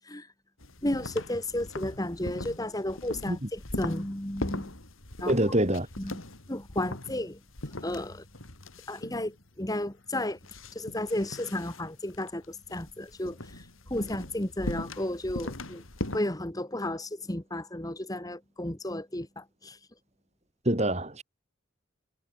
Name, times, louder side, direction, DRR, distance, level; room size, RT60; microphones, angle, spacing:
sound 1, 0.6-16.2, left 1 dB, 80° left, 3.6 m, -40 dB
voice 1, 0.8-4.7 5.2-5.3 6.0-6.2 6.5-7.4 7.8-8.2 8.9-10.4 10.8-13.4 13.9-15.8 16.1-19.8, left 1 dB, 20° left, 1.8 m, -33 dB
voice 2, 5.3-5.9 20.7-21.2, right 1 dB, 30° right, 4.1 m, -25 dB
head